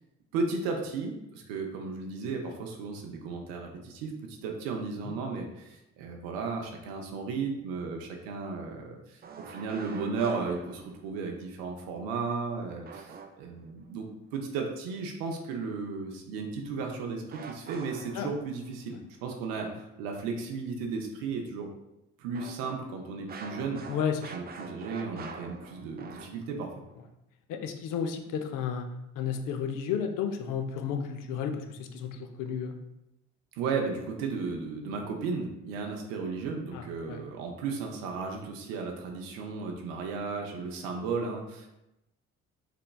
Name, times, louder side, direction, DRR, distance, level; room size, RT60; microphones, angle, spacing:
voice 1, 0.3-21.7 22.2-23.8 24.3-26.7 33.6-41.7, right 4 dB, 85° right, 2 dB, 0.5 m, -34 dB
sound 1, 9.2-11.2 12.8-13.7 17.3-18.7 22.3-26.7, right 5 dB, 30° right, 0.4 m, -45 dB
voice 2, 23.9-24.3 27.5-28.9 29.2-32.8 36.7-37.2, left 7 dB, 65° left, 5 dB, 0.5 m, -32 dB
3.3 x 2.9 x 2.2 m, 0.89 s
hypercardioid pair, 55°, 34 cm